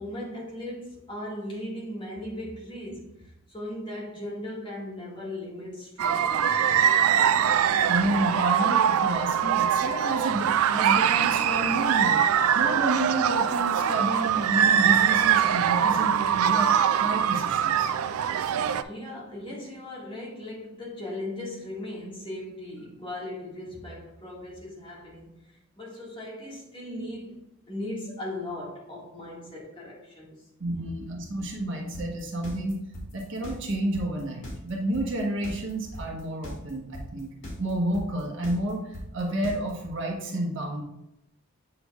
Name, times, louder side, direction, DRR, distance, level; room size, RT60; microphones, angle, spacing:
voice 1, 0.0-7.4 18.4-30.4, left 1 dB, 25° left, 1.8 m, -38 dB
sound 1, 6.0-18.8, right 8 dB, 85° right, 0.4 m, -23 dB
voice 2, 7.9-12.2 12.5-17.9 30.6-32.8 33.1-37.3 37.6-40.8, right 1 dB, 60° right, 1.3 m, -30 dB
sound 2, 31.9-39.9, left 1 dB, 60° left, 1.8 m, -39 dB
7.8 x 6.1 x 2.4 m
head